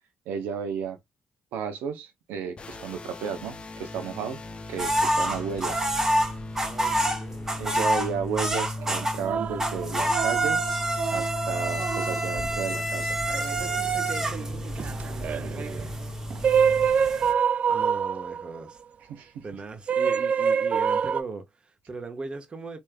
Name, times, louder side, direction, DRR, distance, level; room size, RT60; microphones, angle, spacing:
voice 1, 0.3-1.0 1.5-4.4 4.7-5.8 7.6-10.6 11.1-13.2 19.1-19.4, right 7 dB, 90° right, 0.6 m, -33 dB
sound 1, 2.6-16.9, left 1 dB, 35° left, 0.6 m, -37 dB
sound 2, 4.8-9.3 9.6-17.3, right 1 dB, 15° right, 1.4 m, -28 dB
voice 2, 6.6-7.6 15.3-15.9 17.7-18.8 19.4-22.8, right 3 dB, 35° right, 1.2 m, -39 dB
sound 3, 8.8-12.6 13.3-18.7 19.9-21.2, right 7 dB, 50° right, 0.3 m, -27 dB
3.3 x 3.1 x 2.2 m
supercardioid pair, 75°, 3 cm